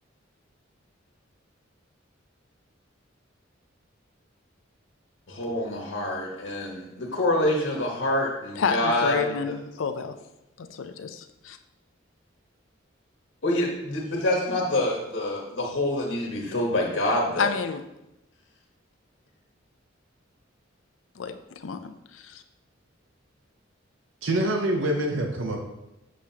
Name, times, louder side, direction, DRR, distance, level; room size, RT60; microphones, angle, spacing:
voice 1, 5.3-9.3 13.4-17.5, left 1 dB, 75° left, -1 dB, 1.3 m, -26 dB
voice 2, 8.6-10.2 10.6-11.6 17.4-17.8 21.2-22.4, left 5 dB, 90° left, 8 dB, 0.5 m, -30 dB
voice 3, 24.2-25.6, right 1 dB, 80° right, 2 dB, 0.7 m, -25 dB
7.6 x 6.1 x 2.8 m, 0.90 s
head